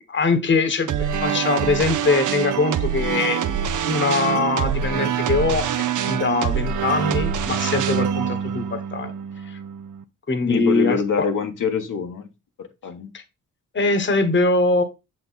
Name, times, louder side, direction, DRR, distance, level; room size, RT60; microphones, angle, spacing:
voice 1, 0.1-3.6 3.8-5.7 6.1-9.1 9.4-9.6 10.3-11.3 13.1-13.2 13.7-14.8, left 3 dB, 35° left, 1.1 m, -22 dB
sound 1, 0.9-10.0, right 8 dB, 65° right, 0.7 m, -25 dB
voice 2, 10.4-12.3 12.6-13.1, left 6 dB, 70° left, 1.2 m, -25 dB
6.8 x 4.3 x 4.0 m
cardioid pair, 70°, 33 cm